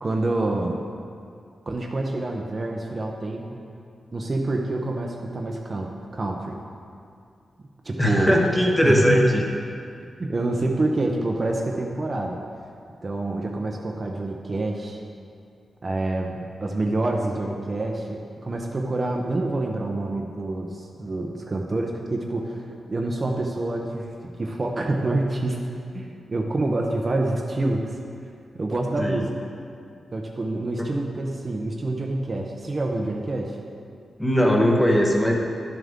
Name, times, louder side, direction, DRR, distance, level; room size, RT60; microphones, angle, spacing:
voice 1, 0.0-0.8 1.7-3.6 4.1-6.6 7.8-8.5 8.8-9.3 10.2-12.4 13.0-15.0 15.8-28.0 28.2-29.3 30.1-33.6, right 2 dB, 30° right, 1 dB, 0.7 m, -27 dB
voice 2, 8.0-9.4 29.0-29.2 30.8-30.9 34.2-35.3, equal, 10° left, -1 dB, 1.0 m, -19 dB
11.5 x 7.4 x 3.5 m, 2.4 s
wide cardioid pair, 155°, 0 cm